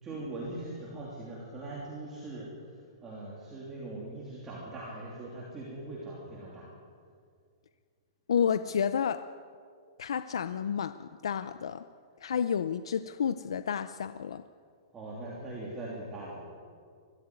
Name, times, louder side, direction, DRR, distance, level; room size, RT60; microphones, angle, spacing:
voice 1, 0.0-2.5 3.0-6.7 14.9-16.5, right 2 dB, 10° right, -5 dB, 2.9 m, -41 dB
voice 2, 8.3-9.2 10.0-11.9 12.2-14.4, left 7 dB, 85° left, 12 dB, 0.8 m, -30 dB
22.5 x 14.5 x 9.7 m, 2.1 s
hypercardioid pair, 180°, 3 cm